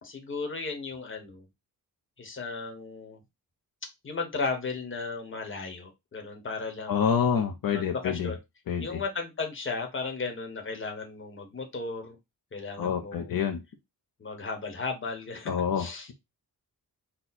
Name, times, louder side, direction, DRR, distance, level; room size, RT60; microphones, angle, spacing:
voice 1, 0.0-1.4 2.2-3.2 4.0-7.1 7.7-8.4 8.8-12.2 12.5-13.4 14.2-16.1, left 4 dB, 35° left, 4 dB, 1.1 m, -35 dB
voice 2, 6.9-8.3 8.7-9.0 12.8-13.6 15.5-16.1, left 7 dB, 70° left, 4 dB, 0.7 m, -27 dB
4.2 x 2.3 x 4.1 m, 0.21 s
wide cardioid pair, 155°, 36 cm